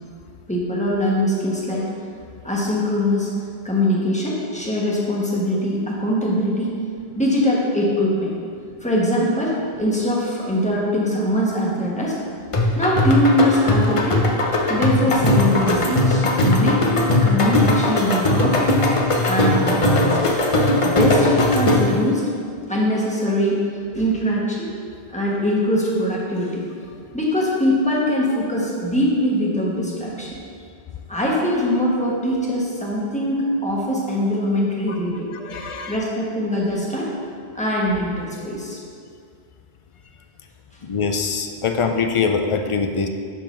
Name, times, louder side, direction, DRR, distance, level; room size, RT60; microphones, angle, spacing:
voice 1, 0.5-1.9 2.4-3.3 3.6-6.7 7.1-8.3 8.8-12.2 12.7-14.2 14.7-18.8 19.2-20.2 20.8-22.2 22.7-23.6 23.9-24.7 25.1-26.6 27.1-30.4 31.1-35.3 35.9-37.1 37.5-38.8, equal, 5° left, -5 dB, 1.3 m, -22 dB
sound 1, 12.5-22.0, left 2 dB, 35° left, 0.7 m, -19 dB
voice 2, 35.3-36.0 40.8-43.1, left 5 dB, 55° left, 5 dB, 0.3 m, -23 dB
7.4 x 3.8 x 5.9 m, 2.2 s
omnidirectional pair, 1.0 m